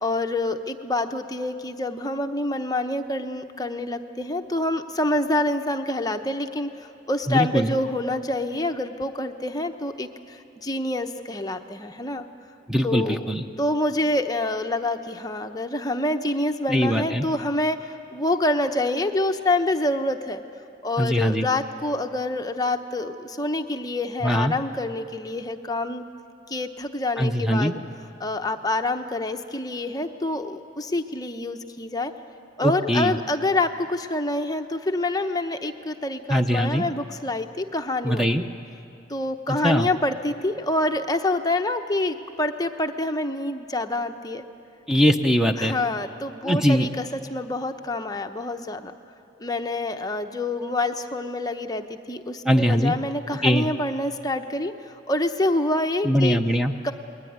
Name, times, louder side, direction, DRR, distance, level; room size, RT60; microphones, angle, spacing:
voice 1, 0.0-12.3 12.8-13.2 13.6-20.4 20.8-26.1 26.5-27.8 28.2-32.1 32.6-38.3 39.1-44.4 45.6-49.0 49.4-56.4 56.8-56.9, left 2 dB, 20° left, 6 dB, 0.9 m, -27 dB
voice 2, 7.3-7.7 12.7-13.4 16.7-17.3 21.0-21.5 24.2-24.5 27.2-27.7 32.6-33.2 36.3-36.8 38.0-38.4 39.6-39.9 44.9-45.7 46.4-46.9 52.4-52.9 53.4-53.7 56.0-56.7, equal, 5° right, 5 dB, 0.8 m, -21 dB
28.5 x 21.5 x 9.4 m, 2.7 s
head